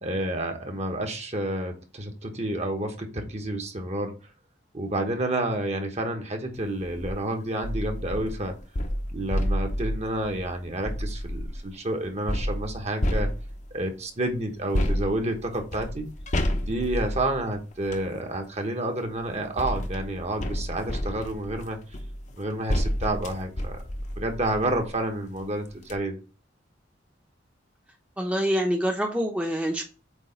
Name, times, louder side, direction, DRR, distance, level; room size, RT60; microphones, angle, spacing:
voice 1, 0.0-4.1 4.7-8.6 9.1-13.3 13.7-16.1 16.7-21.8 22.4-23.8 24.2-26.2, right 1 dB, 35° right, 4 dB, 1.1 m, -29 dB
sound 1, 6.8-7.2 7.6-11.7 12.3-13.8 14.7-18.1 19.0-25.0 25.4-25.5 25.8-26.0, equal, 40° left, 0.8 m, -30 dB
voice 2, 28.2-29.8, equal, 5° right, 1 dB, 0.8 m, -26 dB
8.2 x 3.1 x 4.3 m, 0.35 s
head